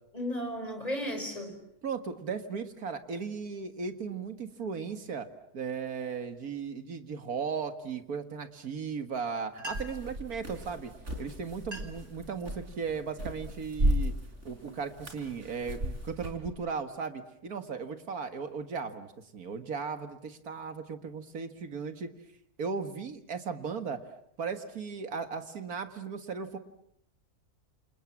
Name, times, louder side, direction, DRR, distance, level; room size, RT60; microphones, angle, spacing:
voice 1, 0.1-1.5, equal, 25° left, 5 dB, 5.1 m, -34 dB
voice 2, 1.8-5.3 5.5-10.9 11.2-14.1 14.4-22.1 22.6-24.0 24.4-26.6, right 5 dB, 80° right, 9 dB, 2.2 m, -36 dB
sound 1, 9.3-9.4 9.5-10.2 11.0-11.2 11.5-12.1 12.6-13.0 13.6-13.9 14.4-15.6, equal, 25° right, 2.5 m, -46 dB
sound 2, 9.7-16.5, equal, 50° right, 4.8 m, -35 dB
28.5 x 27.5 x 7.3 m, 0.74 s
omnidirectional pair, 1.6 m